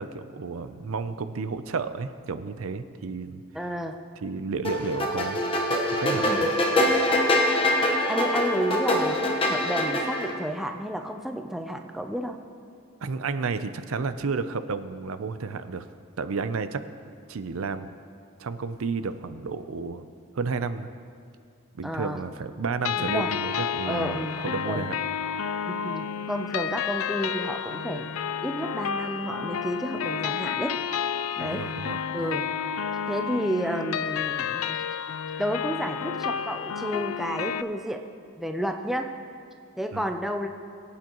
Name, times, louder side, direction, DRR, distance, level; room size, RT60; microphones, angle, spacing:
voice 1, 0.0-3.4 4.2-6.5 13.0-15.8 16.2-16.8 17.3-17.9 18.4-20.0 20.3-20.9 21.7-24.9 31.4-32.0 39.9-40.0, right 4 dB, 80° right, 11 dB, 0.5 m, -32 dB
voice 2, 3.5-4.0 6.2-6.5 8.1-12.4 21.8-22.2 23.0-23.3 23.9-24.9 25.7-28.1 28.4-30.8 31.4-31.7 32.1-32.4 33.1-34.8 35.4-38.0 38.4-39.1 39.8-40.5, equal, ahead, 5 dB, 0.4 m, -31 dB
sound 1, 4.6-10.3, left 1 dB, 25° left, 1.1 m, -24 dB
sound 2, 22.8-37.6, left 7 dB, 85° left, 0.4 m, -31 dB
22.0 x 8.6 x 3.0 m, 2.3 s
head